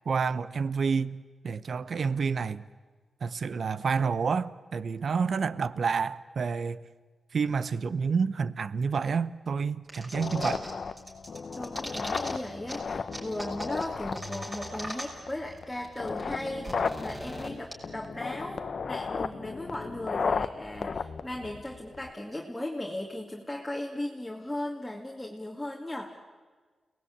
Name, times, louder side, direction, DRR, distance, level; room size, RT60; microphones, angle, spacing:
voice 1, 0.1-2.6 3.2-6.8 7.3-10.6, right 5 dB, 60° right, 0.8 m, -29 dB
sound 1, 9.9-10.7 11.0-12.3 12.7-12.8 13.1-15.3 15.6-15.7 15.8-17.7, right 1 dB, 15° right, 6.1 m, -39 dB
sound 2, 10.1-22.1, left 5 dB, 50° left, 1.0 m, -35 dB
voice 2, 11.6-26.1, left 1 dB, 10° left, 2.3 m, -37 dB
29.5 x 19.0 x 8.7 m
wide cardioid pair, 120°, 0 cm